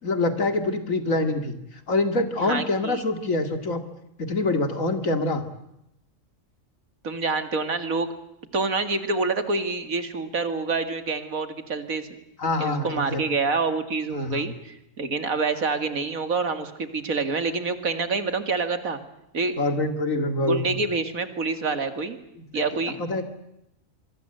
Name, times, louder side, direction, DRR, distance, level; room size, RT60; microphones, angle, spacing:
voice 1, 0.0-1.6 1.9-3.8 4.2-5.4 12.4-13.2 14.1-14.4 19.6-20.6 22.5-22.6 23.0-23.2, left 2 dB, 70° left, 8 dB, 2.6 m, -25 dB
voice 2, 2.4-3.0 7.0-8.1 8.5-12.1 12.6-19.0 19.3-19.5 20.4-22.2 22.5-23.0, right 4 dB, 80° right, 9 dB, 2.6 m, -27 dB
26.0 x 23.0 x 7.9 m, 0.84 s
omnidirectional pair, 1.4 m